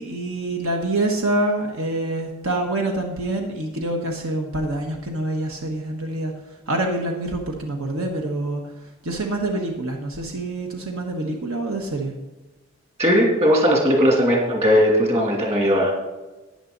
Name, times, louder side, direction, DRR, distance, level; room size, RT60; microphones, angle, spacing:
voice 1, 0.0-6.3 6.7-8.6 9.0-12.1, right 1 dB, 70° right, 2 dB, 1.3 m, -26 dB
voice 2, 13.0-15.9, equal, 30° right, -1 dB, 2.7 m, -18 dB
13.0 x 9.6 x 4.0 m, 1.1 s
head